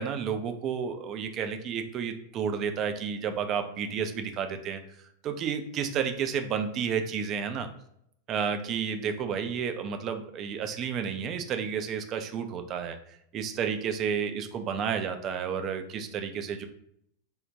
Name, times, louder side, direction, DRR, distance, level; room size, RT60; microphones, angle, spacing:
voice 1, 0.0-4.8 5.2-7.7 8.3-13.0 13.3-16.7, right 7 dB, 35° right, 7 dB, 0.3 m, -31 dB
3.4 x 2.1 x 2.6 m, 0.73 s
figure-of-eight pair, 90°, 0 cm